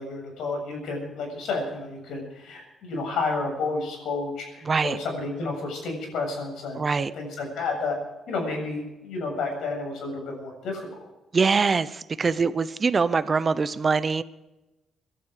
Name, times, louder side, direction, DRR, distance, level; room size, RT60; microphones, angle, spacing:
voice 1, 0.0-8.0 8.3-10.9, left 3 dB, 80° left, 2 dB, 7.5 m, -31 dB
voice 2, 4.7-5.0 6.8-7.1 11.3-14.2, right 5 dB, 35° right, 15 dB, 0.8 m, -23 dB
23.5 x 12.0 x 5.0 m, 1.0 s
cardioid pair, 90°, 0 cm